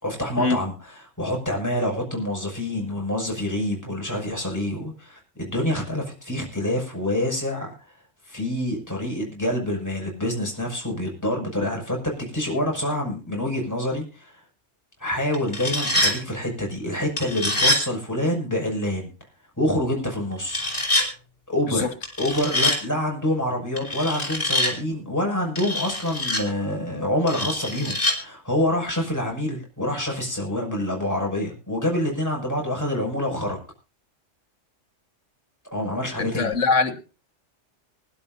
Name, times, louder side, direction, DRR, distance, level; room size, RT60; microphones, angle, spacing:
voice 1, 0.0-7.7 8.3-12.0 12.3-14.4 15.0-19.1 19.6-20.7 21.5-21.9 22.2-33.6 35.7-36.5, left 1 dB, 15° left, 6.2 m, -26 dB
sound 1, 15.3-16.2 17.2-17.8 20.5-21.1 22.0-22.8 23.8-24.7 25.6-26.4 27.3-28.2, left 1 dB, 45° left, 5.0 m, -24 dB
voice 2, 36.2-37.0, left 4 dB, 90° left, 2.0 m, -22 dB
24.5 x 11.5 x 2.6 m
omnidirectional pair, 1.2 m